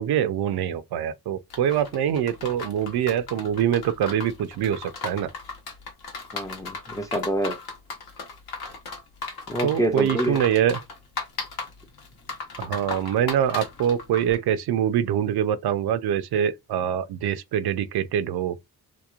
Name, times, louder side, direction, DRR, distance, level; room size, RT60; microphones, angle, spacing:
voice 1, 0.0-5.3 9.6-10.8 12.6-18.6, right 9 dB, 75° right, 0.5 m, -24 dB
sound 1, 1.5-14.4, left 4 dB, 65° left, 0.9 m, -36 dB
voice 2, 6.3-7.6 9.5-10.4, right 1 dB, 10° left, 0.4 m, -26 dB
2.9 x 2.0 x 2.4 m
cardioid pair, 85°, 39 cm